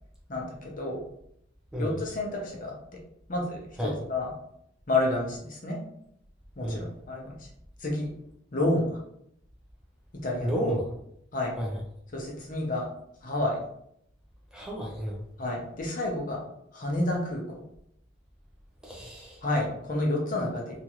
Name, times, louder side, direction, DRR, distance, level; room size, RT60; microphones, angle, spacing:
voice 1, 0.3-1.0 1.8-2.7 3.3-4.3 4.9-5.8 6.6-7.5 7.8-8.1 8.5-9.0 10.2-10.7 11.3-11.6 12.1-12.9 13.2-13.6 15.4-16.4 16.7-17.6 19.4-20.8, left 2 dB, 45° left, -1 dB, 0.7 m, -30 dB
voice 2, 10.4-10.9 11.6-11.7 14.5-15.2 18.8-19.4, equal, 5° right, -3 dB, 0.4 m, -31 dB
2.9 x 2.4 x 2.9 m, 0.73 s
head